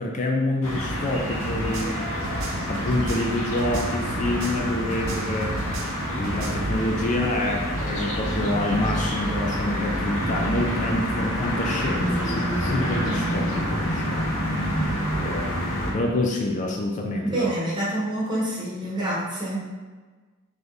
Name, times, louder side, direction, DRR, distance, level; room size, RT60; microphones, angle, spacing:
voice 1, 0.0-2.1 2.7-5.6 6.1-14.4 15.2-17.5, left 1 dB, 35° left, 0 dB, 0.4 m, -27 dB
sound 1, 0.6-15.9, equal, 80° left, 1.2 m, -27 dB
sound 2, 1.4-4.7 4.9-6.7, right 2 dB, 85° right, 0.6 m, -33 dB
voice 2, 17.2-19.6, right 1 dB, 20° right, -7 dB, 1.2 m, -27 dB
4.4 x 3.1 x 3.2 m, 1.3 s
head